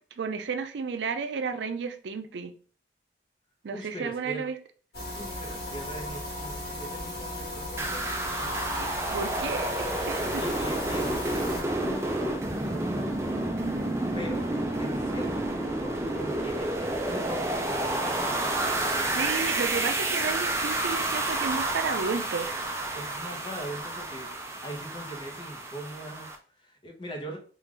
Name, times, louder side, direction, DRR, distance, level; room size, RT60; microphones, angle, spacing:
voice 1, 0.2-2.5 3.6-4.6 8.8-10.4 13.6-14.0 19.1-22.6, right 5 dB, 85° right, 0.4 m, -32 dB
voice 2, 3.7-4.5 5.2-8.8 10.4-12.9 14.1-14.5 14.8-18.4 22.9-27.4, equal, 30° left, 0.8 m, -41 dB
sound 1, 4.9-11.6, left 1 dB, 75° left, 1.4 m, -36 dB
sound 2, 7.8-26.4, right 2 dB, 15° right, 0.4 m, -30 dB
3.7 x 2.4 x 3.1 m
head